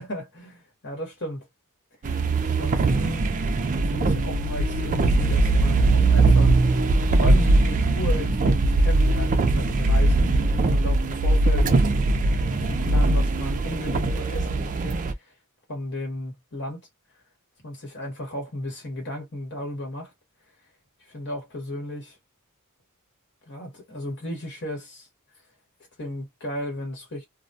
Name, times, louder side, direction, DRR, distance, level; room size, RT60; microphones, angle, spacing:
voice 1, 0.0-1.5 2.4-3.3 3.9-6.6 7.2-11.8 12.3-15.0 15.7-16.9 17.6-20.1 21.1-22.2 23.5-25.1 26.0-27.3, equal, 55° left, 1.1 m, -35 dB
sound 1, 2.0-15.1, right 2 dB, 35° right, 0.4 m, -21 dB
2.2 x 2.1 x 2.6 m
head